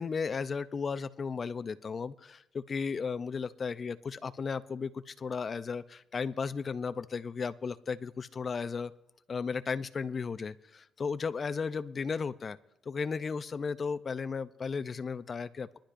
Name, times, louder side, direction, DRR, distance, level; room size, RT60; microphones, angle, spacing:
voice 1, 0.0-8.9 9.3-12.6 12.9-15.8, left 5 dB, 40° left, 13 dB, 0.6 m, -35 dB
21.5 x 11.5 x 2.6 m, 0.82 s
cardioid pair, 90°, 0 cm